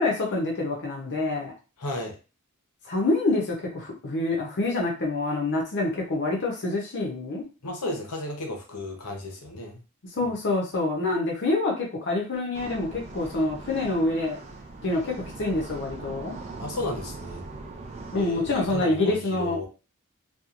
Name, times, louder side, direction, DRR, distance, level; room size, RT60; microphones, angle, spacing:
voice 1, 0.0-1.5 2.8-7.4 10.2-14.4 14.8-16.3 18.1-19.6, left 2 dB, 55° left, -1 dB, 0.6 m, -26 dB
voice 2, 1.8-2.2 7.6-9.8 10.2-10.3 16.6-17.4 18.1-19.7, left 2 dB, 85° left, 2 dB, 0.9 m, -33 dB
sound 1, 12.5-18.8, right 3 dB, 30° right, 0.4 m, -41 dB
2.8 x 2.3 x 2.4 m, 0.32 s
head